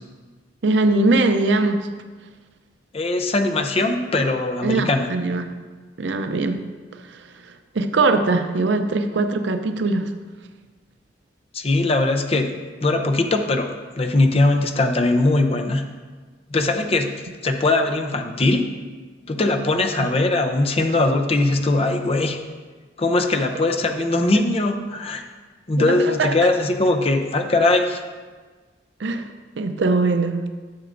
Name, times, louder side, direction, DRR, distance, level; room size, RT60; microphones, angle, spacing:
voice 1, 0.6-1.9 4.6-5.5 6.0-6.6 7.1-10.1 20.0-20.1 25.8-26.3 29.0-29.3 29.6-30.4, right 3 dB, 80° right, 7 dB, 0.6 m, -21 dB
voice 2, 2.9-5.1 11.5-12.5 12.8-15.9 16.5-18.7 19.3-22.4 23.0-25.2 25.7-28.0, left 2 dB, 35° left, 5 dB, 0.6 m, -20 dB
12.0 x 6.7 x 2.6 m, 1.4 s
head